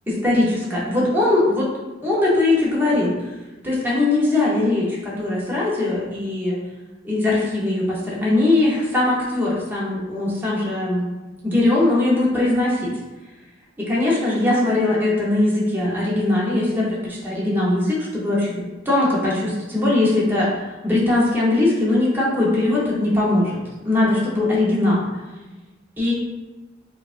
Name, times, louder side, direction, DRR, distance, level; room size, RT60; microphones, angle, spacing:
voice 1, 0.2-1.7 2.0-3.1 3.6-6.6 7.0-11.1 11.4-12.9 13.9-18.5 18.8-20.5 20.8-23.6 23.8-25.1 26.0-26.1, left 2 dB, 10° right, -6 dB, 0.9 m, -20 dB
4.6 x 2.4 x 2.5 m, 1.1 s
head